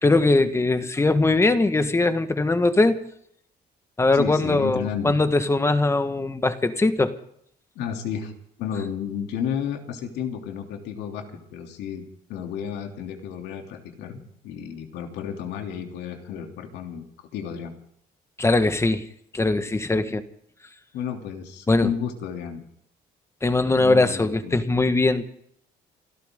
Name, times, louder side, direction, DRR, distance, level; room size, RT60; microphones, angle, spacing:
voice 1, 0.0-3.0 4.0-7.1 18.4-19.0 19.3-20.2 21.7-21.9 23.4-25.2, left 2 dB, 15° left, 9 dB, 1.6 m, -21 dB
voice 2, 4.1-5.2 7.7-8.3 8.6-12.0 12.3-17.1 17.3-17.7 20.0-20.1 20.9-22.6 23.6-24.7, left 8 dB, 80° left, 4 dB, 3.2 m, -32 dB
28.5 x 13.0 x 3.9 m, 0.68 s
cardioid pair, 110°, 17 cm